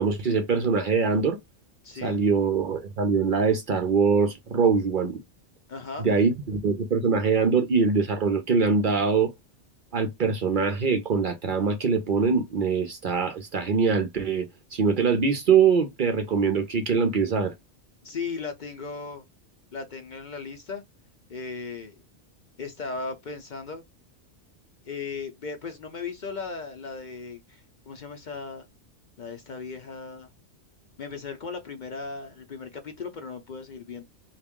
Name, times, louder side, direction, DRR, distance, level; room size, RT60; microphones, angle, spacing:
voice 1, 0.0-1.4 2.0-5.2 6.0-9.3 9.9-17.5, right 5 dB, 55° right, 0.7 m, -23 dB
voice 2, 1.8-2.2 5.7-6.1 18.0-19.2 19.7-20.8 21.3-22.0 22.6-23.9 24.9-28.7 29.2-30.3 31.0-34.0, left 4 dB, 50° left, 0.7 m, -37 dB
3.4 x 2.4 x 3.6 m
omnidirectional pair, 1.2 m